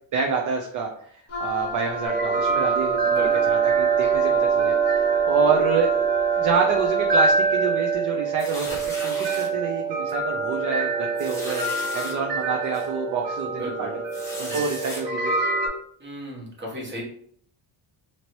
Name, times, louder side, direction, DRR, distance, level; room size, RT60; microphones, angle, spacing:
voice 1, 0.1-3.1 3.4-5.9 6.4-13.9 14.4-15.4, right 5 dB, 45° right, 1 dB, 0.5 m, -28 dB
Wind instrument woodwind instrument, 1.3-7.3, left 1 dB, 35° left, 0.7 m, -32 dB
sound 1, 2.0-15.7, right 5 dB, 65° right, 1.1 m, -24 dB
voice 2, 3.0-3.5 13.5-14.0 14.4-14.7 16.0-17.0, right 1 dB, 25° right, -3 dB, 1.1 m, -35 dB
sound 2, 8.4-9.5 10.1-10.3 10.5-10.6 11.2-12.1 12.7-12.9 14.1-15.0, left 1 dB, 5° left, 0.9 m, -36 dB
2.9 x 2.8 x 3.0 m, 0.62 s
cardioid pair, 135°, 45 cm